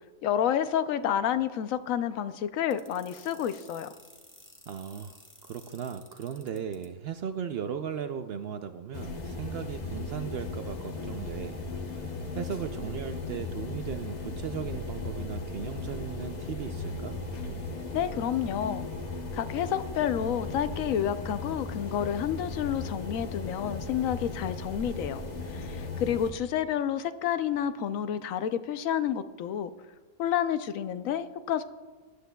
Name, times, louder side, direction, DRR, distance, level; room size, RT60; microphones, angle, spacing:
voice 1, 0.2-3.9 17.9-18.9 19.3-25.2 25.5-29.7 30.2-31.6, left 9 dB, 70° left, 12 dB, 0.9 m, -29 dB
sound 1, 2.7-6.9, left 1 dB, 10° left, 1.1 m, -53 dB
voice 2, 4.7-17.2, right 8 dB, 85° right, 8 dB, 0.5 m, -37 dB
sound 2, 8.9-26.3, left 3 dB, 35° left, 0.9 m, -37 dB
19.0 x 11.5 x 2.3 m, 1.4 s
omnidirectional pair, 1.6 m